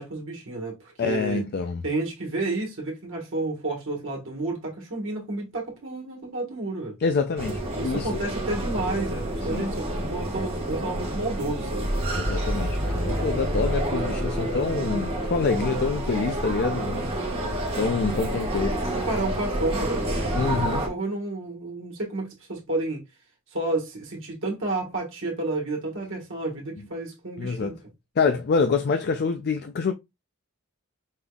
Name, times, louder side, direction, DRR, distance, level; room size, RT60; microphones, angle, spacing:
voice 1, 0.0-1.4 1.8-7.0 7.7-11.9 19.1-23.0 23.5-27.8, right 2 dB, 60° right, 1.3 m, -31 dB
voice 2, 1.0-1.8 7.0-8.2 9.5-9.7 12.2-17.1 17.7-19.1 20.3-20.8 27.4-27.8 28.2-29.9, left 4 dB, 50° left, 0.4 m, -26 dB
sound 1, 7.4-20.9, right 1 dB, 30° right, 1.3 m, -28 dB
5.4 x 3.5 x 2.3 m
head